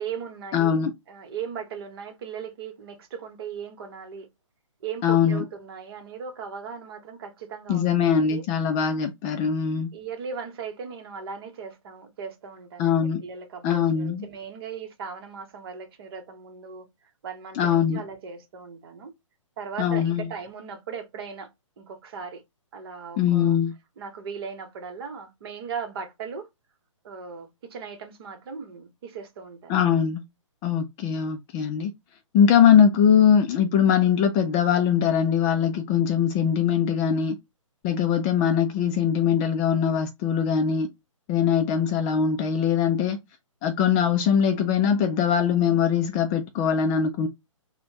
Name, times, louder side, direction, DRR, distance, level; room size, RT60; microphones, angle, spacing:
voice 1, 0.0-0.8 1.1-4.3 4.8-8.4 9.9-16.9 17.2-19.1 19.6-21.5 21.8-22.4 22.7-23.6 24.0-26.5 27.0-29.8, right 6 dB, 45° right, 1.1 m, -38 dB
voice 2, 0.5-0.9 5.0-5.4 7.7-9.9 12.8-13.2 13.6-14.3 17.6-18.0 19.8-20.3 23.2-23.7 29.7-30.2 30.6-31.9 32.3-37.4 37.8-40.9 41.3-43.2 43.6-47.3, left 8 dB, 20° left, 0.4 m, -21 dB
4.1 x 2.2 x 2.8 m
figure-of-eight pair, 135°, 17 cm